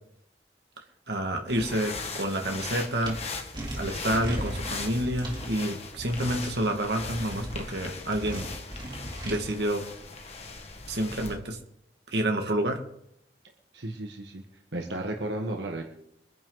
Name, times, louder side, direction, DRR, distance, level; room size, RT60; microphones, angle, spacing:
voice 1, 1.1-3.2 3.8-8.4 9.2-9.8 10.9-11.6 12.1-12.8, right 1 dB, 70° right, 3 dB, 2.2 m, -28 dB
sound 1, 1.5-11.4, left 3 dB, 35° left, 1.8 m, -39 dB
sound 2, 3.0-3.1 3.5-5.4 6.0-6.5 7.0-7.6 8.1-9.4, right 1 dB, 25° right, 3.1 m, -37 dB
voice 2, 13.7-14.4 14.7-15.8, right 1 dB, 90° right, 1 dB, 1.7 m, -33 dB
23.5 x 10.5 x 4.1 m, 0.75 s
head